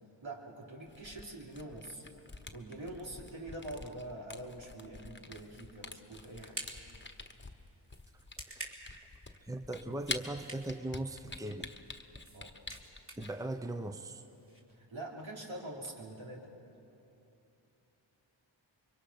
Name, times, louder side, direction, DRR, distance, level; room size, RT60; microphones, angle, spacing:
voice 1, 0.0-2.0 2.5-6.6 12.3-12.6 14.7-16.5, right 1 dB, 75° right, -2 dB, 3.4 m, -45 dB
Camera, 0.9-13.4, left 3 dB, 25° left, 1.3 m, -47 dB
sound 1, 5.4-14.6, right 1 dB, 25° right, 3.7 m, -51 dB
voice 2, 9.4-11.7 13.2-14.2, right 1 dB, 5° right, 8 dB, 0.8 m, -39 dB
25.0 x 23.0 x 5.7 m, 2.9 s
cardioid pair, 45°, 48 cm